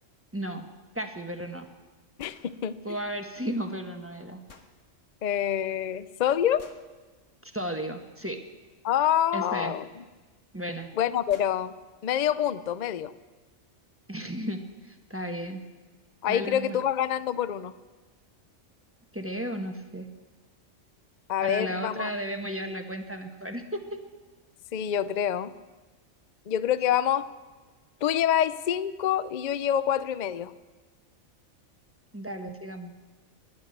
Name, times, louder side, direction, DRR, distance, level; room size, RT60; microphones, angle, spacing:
voice 1, 0.3-0.6 0.9-1.7 2.8-4.4 7.4-8.4 9.3-9.7 10.5-10.9 14.1-15.6 16.3-16.8 19.1-20.1 21.4-23.8 32.1-32.9, right 1 dB, 10° right, 5 dB, 1.1 m, -34 dB
sound 1, 2.2-2.5 4.5-4.7 6.6-6.9 9.1-9.2 10.6-10.7 11.0-11.1 11.3-11.6, left 4 dB, 75° left, 1.7 m, -51 dB
voice 2, 2.2-2.7 5.2-6.6 8.8-9.8 11.0-11.7 12.0-13.1 16.2-17.7 21.3-22.1 24.7-25.5 26.5-27.3 28.0-30.5, left 10 dB, 50° left, 15 dB, 0.5 m, -26 dB
19.5 x 11.0 x 6.7 m, 1.3 s
omnidirectional pair, 1.3 m